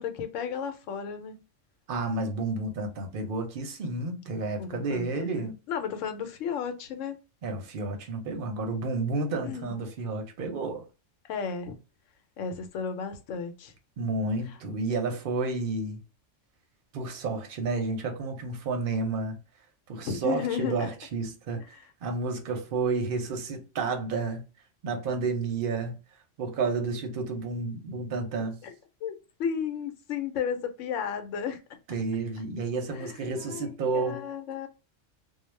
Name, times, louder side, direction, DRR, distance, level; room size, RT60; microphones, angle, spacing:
voice 1, 0.0-1.4 4.4-7.2 9.4-9.8 11.2-11.7 12.4-13.7 20.0-20.9 21.6-21.8 28.4-28.7 29.0-31.6 32.9-34.7, left 7 dB, 85° left, 0.9 m, -34 dB
voice 2, 1.9-5.5 7.4-10.8 14.0-16.0 16.9-19.4 19.9-24.4 24.8-25.9 26.4-28.6 31.9-34.2, right 3 dB, 55° right, 0.8 m, -31 dB
2.3 x 2.0 x 3.1 m
omnidirectional pair, 1.3 m